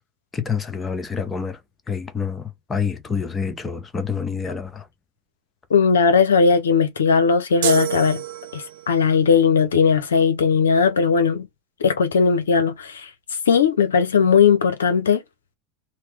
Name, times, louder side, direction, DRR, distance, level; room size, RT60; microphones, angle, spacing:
voice 1, 0.3-1.6 1.9-4.9, left 6 dB, 20° left, 0.7 m, -27 dB
voice 2, 5.7-8.2 8.5-11.5 11.8-15.2, left 6 dB, 90° left, 0.5 m, -18 dB
sound 1, 7.6-9.0, right 13 dB, 75° right, 0.4 m, -27 dB
2.9 x 2.0 x 3.2 m
hypercardioid pair, 90°, 0 cm